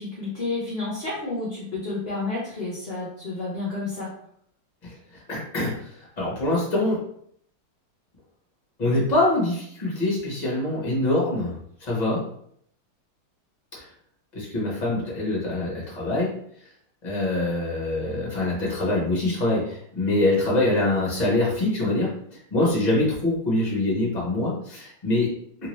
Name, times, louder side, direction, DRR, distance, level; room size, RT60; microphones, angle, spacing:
voice 1, 0.0-4.1, left 3 dB, 45° left, -6 dB, 0.9 m, -30 dB
voice 2, 4.8-5.9 6.2-7.0 8.8-11.5 11.8-12.2 14.3-16.3 17.0-22.1 22.5-25.3, left 2 dB, 25° left, -5 dB, 1.2 m, -24 dB
3.3 x 2.9 x 3.1 m, 0.68 s
omnidirectional pair, 2.1 m